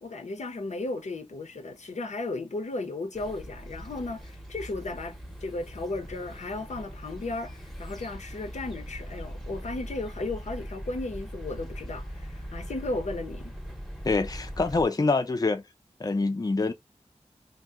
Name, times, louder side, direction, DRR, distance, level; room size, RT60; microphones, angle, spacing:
voice 1, 0.0-13.5, left 2 dB, 85° left, 0.6 m, -35 dB
sound 1, 3.1-14.8, equal, ahead, 0.7 m, -41 dB
voice 2, 14.0-15.6 16.0-16.7, left 3 dB, 30° left, 0.4 m, -25 dB
2.7 x 2.0 x 3.4 m
wide cardioid pair, 65°, 12 cm